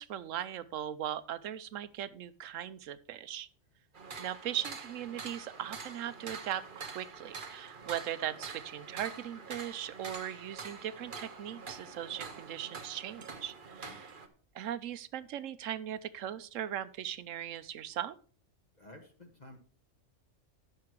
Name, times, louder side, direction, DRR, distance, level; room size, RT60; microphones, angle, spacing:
voice 1, 0.0-3.5 4.2-14.1 14.5-18.2, right 10 dB, 85° right, 15 dB, 1.0 m, -39 dB
sound 1, 3.9-14.3, right 4 dB, 45° right, 1.2 m, -46 dB
voice 2, 18.8-19.6, left 1 dB, 35° left, 2 dB, 1.4 m, -53 dB
10.5 x 6.7 x 4.7 m, 0.41 s
omnidirectional pair, 1.3 m